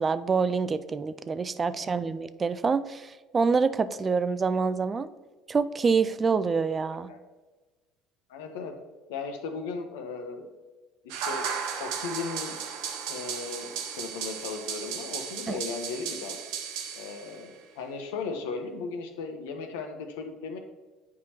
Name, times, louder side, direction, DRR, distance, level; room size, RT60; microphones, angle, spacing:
voice 1, 0.0-5.1 5.5-7.1 15.5-15.6, right 5 dB, 30° right, 13 dB, 0.4 m, -26 dB
voice 2, 6.8-7.2 8.3-8.7 9.1-10.5 11.3-11.5 11.8-12.6 13.1-16.4 17.0-17.5 17.8-20.6, left 4 dB, 80° left, 5 dB, 0.8 m, -36 dB
sound 1, 11.1-17.5, right 7 dB, 75° right, 0.7 m, -35 dB
8.4 x 4.7 x 2.9 m, 1.2 s
hypercardioid pair, 75°, 0 cm